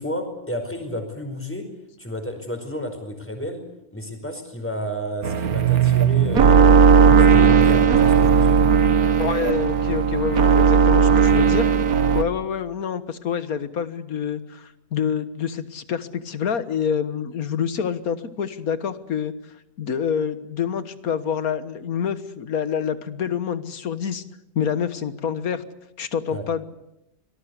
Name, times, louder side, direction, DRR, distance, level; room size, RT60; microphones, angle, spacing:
voice 1, 0.0-1.6 2.0-3.6 3.9-8.6 26.3-26.5, equal, 10° left, 5 dB, 4.9 m, -31 dB
sound 1, 5.2-12.2, right 6 dB, 80° right, 1.7 m, -16 dB
voice 2, 9.2-11.7 12.1-19.3 19.8-24.2 24.5-25.6 26.0-26.6, left 7 dB, 75° left, 12 dB, 1.8 m, -27 dB
25.5 x 19.5 x 8.2 m, 0.87 s
omnidirectional pair, 1.5 m